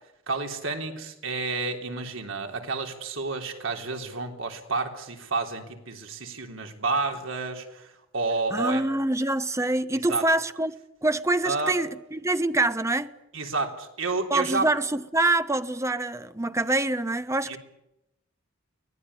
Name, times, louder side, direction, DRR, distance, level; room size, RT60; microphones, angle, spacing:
voice 1, 0.3-8.8 9.9-10.2 11.4-11.7 13.3-14.7 17.5-17.6, right 3 dB, 70° right, 3.6 m, -30 dB
voice 2, 8.5-10.7 11.0-13.1 14.3-17.6, right 2 dB, 15° right, 1.0 m, -25 dB
24.0 x 18.5 x 9.9 m
head